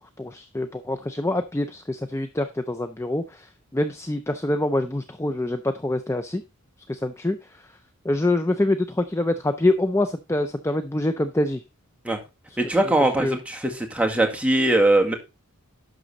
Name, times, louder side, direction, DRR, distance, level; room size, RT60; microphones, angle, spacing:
voice 1, 0.2-6.4 6.9-7.7 8.0-11.6 12.5-12.6 12.8-12.9 13.2-13.4, left 1 dB, 10° left, 9 dB, 0.5 m, -25 dB
voice 2, 12.6-15.1, right 1 dB, 5° right, 2 dB, 1.8 m, -21 dB
11.0 x 3.8 x 6.5 m, 0.26 s
head